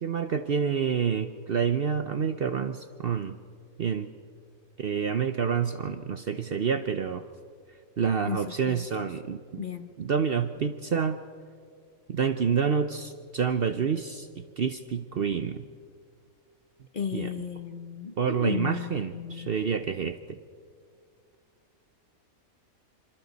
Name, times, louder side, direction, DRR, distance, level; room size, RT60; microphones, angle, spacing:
voice 1, 0.0-3.4 3.8-4.1 4.8-7.2 8.0-9.7 10.0-11.2 12.1-15.7 17.1-17.3 18.2-20.4, right 6 dB, 50° right, 10 dB, 0.7 m, -28 dB
voice 2, 8.2-9.0 9.6-9.9 16.9-19.5, left 7 dB, 40° left, 9 dB, 0.9 m, -35 dB
27.5 x 26.5 x 4.1 m, 2.2 s
omnidirectional pair, 1.5 m